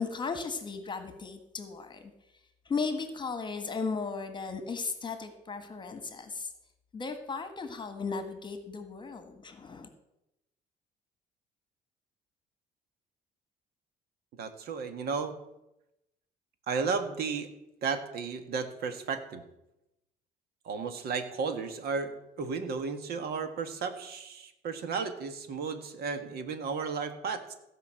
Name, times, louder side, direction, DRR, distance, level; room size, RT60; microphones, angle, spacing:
voice 1, 0.0-2.0 2.6-6.5 6.9-9.9, left 4 dB, 25° left, 8 dB, 1.4 m, -36 dB
voice 2, 14.4-15.3 16.7-17.5 17.8-19.4 20.6-27.6, right 5 dB, 65° right, 8 dB, 1.5 m, -34 dB
16.0 x 5.3 x 7.6 m, 0.90 s
cardioid pair, 110°, 17 cm